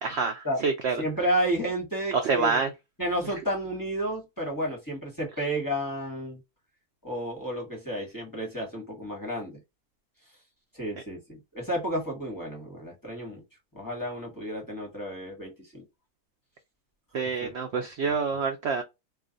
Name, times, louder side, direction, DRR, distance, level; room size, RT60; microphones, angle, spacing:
voice 1, 0.0-1.0 2.1-2.7 17.1-18.8, right 5 dB, 70° right, 0.6 m, -27 dB
voice 2, 1.0-2.6 3.0-6.4 7.0-9.6 10.7-13.4 13.7-15.8 17.4-17.5, right 1 dB, 15° left, 0.9 m, -31 dB
2.4 x 2.4 x 3.8 m
omnidirectional pair, 1.6 m